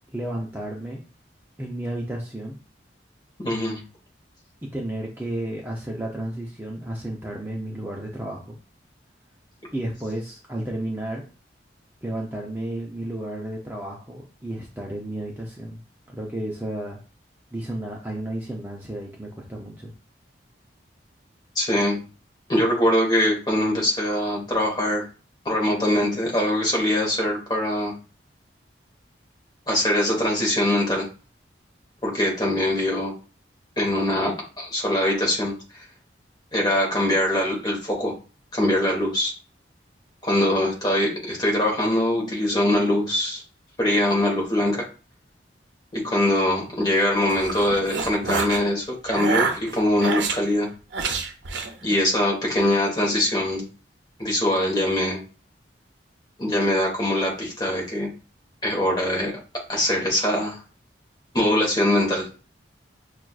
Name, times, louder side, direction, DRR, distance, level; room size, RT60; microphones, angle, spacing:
voice 1, 0.1-1.0 1.6-2.6 4.7-8.6 9.7-11.2 12.0-15.8 16.1-17.0 17.5-19.9, right 1 dB, 10° right, -1 dB, 0.5 m, -32 dB
voice 2, 3.4-3.8 21.5-22.0 22.5-25.0 25.4-27.9 29.7-31.1 32.0-33.1 33.8-35.5 36.5-38.1 38.5-39.3 40.2-43.4 43.8-44.8 45.9-50.7 51.8-53.6 54.2-55.2 56.4-58.1 58.6-59.3 59.7-60.6 61.3-62.3, left 1 dB, 25° left, -1 dB, 1.1 m, -22 dB
sound 1, 47.0-48.6 49.1-50.4 50.9-51.7, right 4 dB, 75° right, 0.6 m, -27 dB
5.9 x 2.4 x 2.3 m, 0.35 s
head